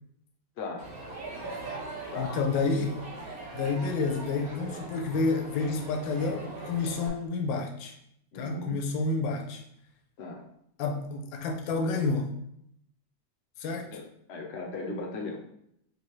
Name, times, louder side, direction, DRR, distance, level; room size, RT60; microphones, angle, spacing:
voice 1, 0.6-0.9 2.1-2.4 8.3-8.8 10.2-10.4 13.9-14.0 14.3-15.4, left 2 dB, 55° left, 1 dB, 0.7 m, -37 dB
Crowd, 0.8-7.1, right 2 dB, 50° right, 1.5 m, -41 dB
voice 2, 2.2-3.0 3.5-7.9 8.3-9.6 10.8-12.3 13.6-13.9, left 3 dB, 75° left, 3 dB, 1.3 m, -29 dB
5.2 x 3.2 x 3.1 m, 0.74 s
omnidirectional pair, 2.1 m